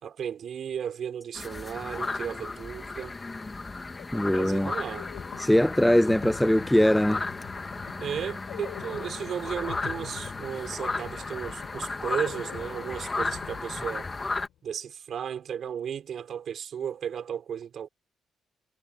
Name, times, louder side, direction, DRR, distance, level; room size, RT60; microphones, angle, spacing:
voice 1, 0.0-3.1 4.3-5.1 8.0-14.1 14.6-17.9, right 8 dB, 60° right, 3.7 m, -34 dB
sound 1, 1.4-14.5, left 3 dB, 25° left, 1.8 m, -35 dB
sound 2, 4.0-14.5, left 12 dB, 80° left, 5.7 m, -45 dB
voice 2, 4.1-4.7 5.4-7.2, left 1 dB, 5° left, 0.6 m, -21 dB
cardioid pair, 90°, 0 cm